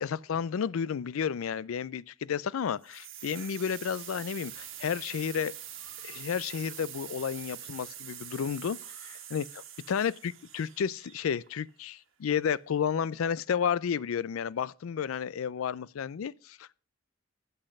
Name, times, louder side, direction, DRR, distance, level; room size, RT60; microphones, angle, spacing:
voice 1, 0.0-5.5 6.0-16.7, left 7 dB, 80° left, 0.4 m, -32 dB
sound 1, 2.8-11.7, right 10 dB, 65° right, 1.4 m, -45 dB
7.9 x 6.4 x 6.4 m
head